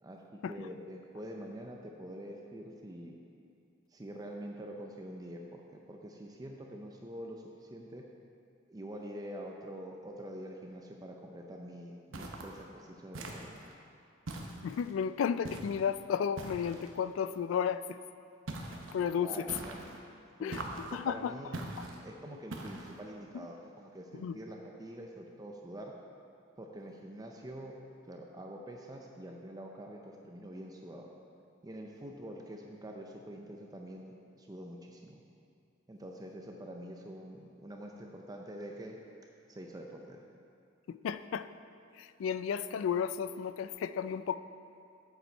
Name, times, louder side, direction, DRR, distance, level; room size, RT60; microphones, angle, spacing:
voice 1, 0.0-3.1 3.9-8.1 8.7-13.6 19.2-19.8 20.4-21.7 22.0-25.9 26.6-27.8 28.0-31.1 31.6-35.2 35.9-39.0 39.5-40.2, right 1 dB, 20° right, 1 dB, 0.5 m, -46 dB
sound 1, 12.1-12.6 13.1-13.7 14.3-14.9 15.4-15.8 16.4-16.9 18.5-19.0 19.5-20.0 20.5-21.0 21.5-22.0 22.5-23.0, right 2 dB, 80° right, 0.9 m, -42 dB
voice 2, 14.6-18.0 18.9-19.5 20.4-21.4 24.1-24.4 40.9-41.5 42.0-44.4, left 7 dB, 75° left, 13 dB, 0.3 m, -33 dB
8.0 x 7.4 x 4.4 m, 2.5 s
head